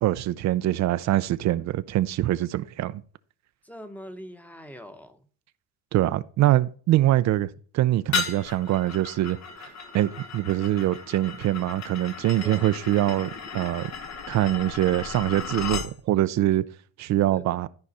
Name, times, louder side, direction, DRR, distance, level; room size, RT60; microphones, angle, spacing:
voice 1, 0.0-3.0 5.9-13.9 14.3-16.6 17.0-17.7, right 14 dB, 70° right, 0.5 m, -24 dB
voice 2, 3.6-5.3 12.4-12.7 17.3-17.6, equal, 5° left, 1.0 m, -43 dB
sound 1, 8.1-15.9, left 5 dB, 70° left, 1.8 m, -35 dB
13.0 x 4.8 x 4.2 m
cardioid pair, 105°, 29 cm